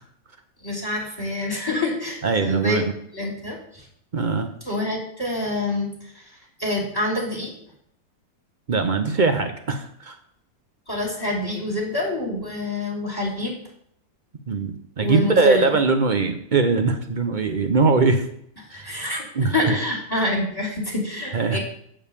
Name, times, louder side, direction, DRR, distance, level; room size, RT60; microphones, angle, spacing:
voice 1, 0.6-2.8 3.1-3.9 4.6-7.5 10.9-13.5 15.0-15.8 18.7-21.6, left 2 dB, 10° left, -2 dB, 2.7 m, -27 dB
voice 2, 2.2-2.9 4.1-4.5 8.7-10.2 14.5-18.3 18.7-18.9 19.3-19.5 21.3-21.6, right 4 dB, 55° right, 6 dB, 0.5 m, -21 dB
8.8 x 5.4 x 6.8 m, 0.69 s
omnidirectional pair, 2.0 m